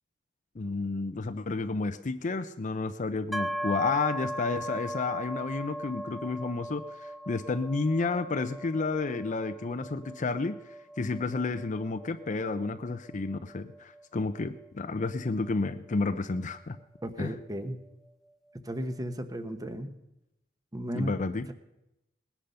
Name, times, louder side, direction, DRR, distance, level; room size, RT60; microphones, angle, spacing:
voice 1, 0.6-16.8 17.2-17.3 20.9-21.5, left 3 dB, 40° left, 9 dB, 0.5 m, -31 dB
sound 1, 3.3-17.0, equal, ahead, 0.7 m, -39 dB
voice 2, 17.0-17.8 18.6-19.9 20.7-21.1, equal, 20° right, 10 dB, 1.0 m, -34 dB
19.5 x 10.5 x 5.5 m, 0.90 s
head